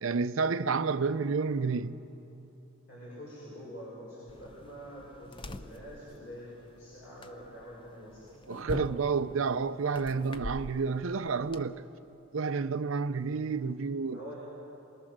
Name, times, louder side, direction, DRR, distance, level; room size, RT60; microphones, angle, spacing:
voice 1, 0.0-1.9 8.5-11.8 12.3-14.2, right 5 dB, 70° right, 0.6 m, -30 dB
voice 2, 2.9-8.9 14.0-14.4, equal, 55° left, 6.5 m, -46 dB
sound 1, 4.3-11.6, left 1 dB, 25° left, 0.6 m, -45 dB
24.0 x 20.5 x 6.6 m
head